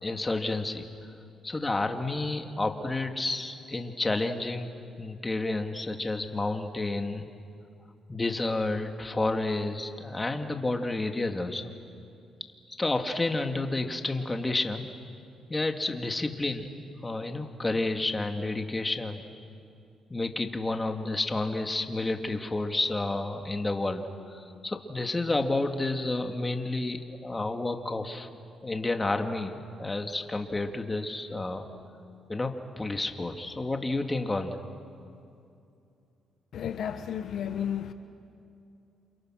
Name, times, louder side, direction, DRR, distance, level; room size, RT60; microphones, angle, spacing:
voice 1, 0.0-0.8 1.4-4.7 5.0-7.3 8.1-11.7 12.8-14.9 15.5-16.7 17.0-19.2 20.1-28.3 28.6-31.7 32.3-34.6, left 2 dB, 20° left, 2.1 m, -30 dB
voice 2, 36.5-37.9, left 9 dB, 65° left, 1.2 m, -32 dB
29.5 x 28.0 x 6.4 m
cardioid pair, 90°, 0 cm